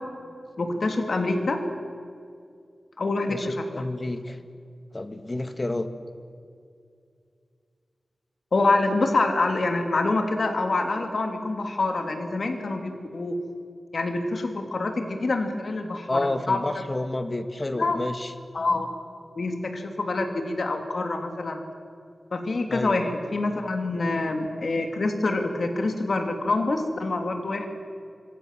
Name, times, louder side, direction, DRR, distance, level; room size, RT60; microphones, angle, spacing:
voice 1, 0.6-1.6 3.0-3.7 8.5-13.4 13.9-16.2 16.5-16.6 17.8-18.0 18.5-18.9 19.4-21.6 22.3-27.7, left 2 dB, 60° left, 5 dB, 3.2 m, -26 dB
voice 2, 3.3-4.4 4.9-5.9 16.1-18.3 22.7-23.0, left 2 dB, 30° left, 9 dB, 1.8 m, -29 dB
26.5 x 24.0 x 7.7 m, 2.3 s
wide cardioid pair, 100°, 0 cm